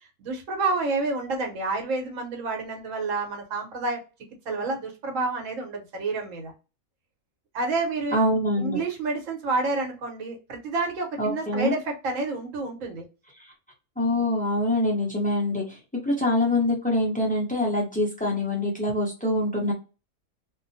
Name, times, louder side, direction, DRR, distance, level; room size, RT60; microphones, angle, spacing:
voice 1, 0.2-4.0 4.5-6.5 7.5-8.2 8.6-13.0, right 3 dB, 70° right, 3 dB, 1.2 m, -29 dB
voice 2, 8.1-8.8 11.2-11.7 13.4-13.5 14.0-19.7, left 1 dB, 10° left, -2 dB, 0.6 m, -25 dB
2.7 x 2.1 x 2.6 m, 0.31 s
omnidirectional pair, 1.4 m